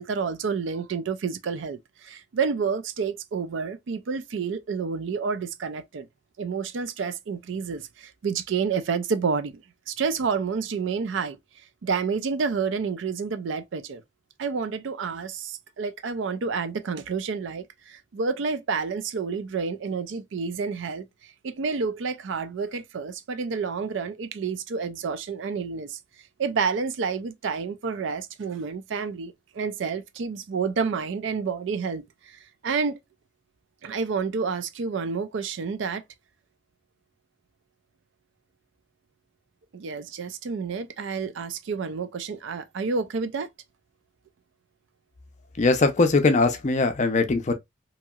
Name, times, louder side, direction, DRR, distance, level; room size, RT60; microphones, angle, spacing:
voice 1, 0.0-6.1 6.4-9.6 9.9-11.4 11.8-14.0 14.4-21.1 21.4-26.0 26.4-33.0 33.8-36.0 39.7-43.5, right 5 dB, 70° right, 0.4 m, -29 dB
voice 2, 45.6-47.5, left 3 dB, 35° left, 0.5 m, -21 dB
2.9 x 2.7 x 2.3 m
head